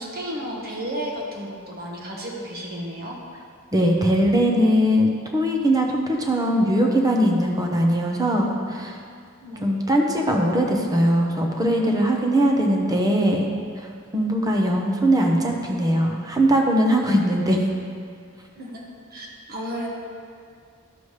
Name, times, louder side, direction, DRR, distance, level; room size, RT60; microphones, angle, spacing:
voice 1, 0.0-3.2 9.4-9.8 18.5-18.8 19.1-19.9, equal, 45° right, -2 dB, 1.3 m, -33 dB
voice 2, 3.7-9.0 9.6-17.6, equal, 20° right, 1 dB, 0.8 m, -21 dB
11.0 x 7.0 x 3.3 m, 2.2 s
head